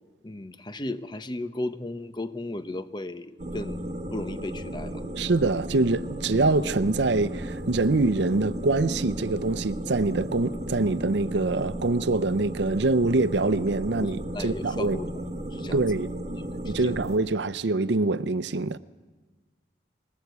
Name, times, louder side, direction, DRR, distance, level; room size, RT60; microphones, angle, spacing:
voice 1, 0.2-5.0 14.0-15.1 15.5-15.8 16.6-17.0, left 1 dB, 25° left, 1.0 m, -35 dB
sound 1, 3.4-17.2, right 1 dB, 40° right, 1.3 m, -35 dB
voice 2, 5.2-14.2 14.4-15.0 15.7-16.1 16.6-18.8, right 3 dB, 85° right, 0.7 m, -24 dB
sound 2, 7.1-17.2, right 1 dB, 20° right, 2.7 m, -51 dB
21.5 x 17.5 x 8.2 m
head